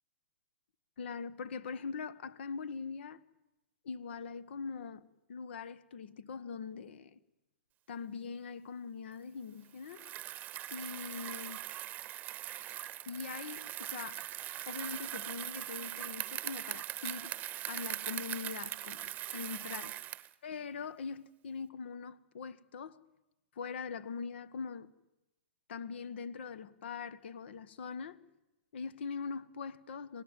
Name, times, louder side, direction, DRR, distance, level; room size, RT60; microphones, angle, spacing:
voice 1, 1.0-3.2 3.8-7.2 7.9-10.0 10.7-11.6 13.0-14.3 14.7-17.3 17.7-20.0 20.4-23.0 23.5-24.9 25.7-28.2 28.7-30.2, left 5 dB, 65° left, 1.4 m, -42 dB
Bicycle, 9.8-20.3, right 14 dB, 30° right, 1.0 m, -41 dB
27.0 x 18.5 x 9.1 m
hypercardioid pair, 125°, 6 cm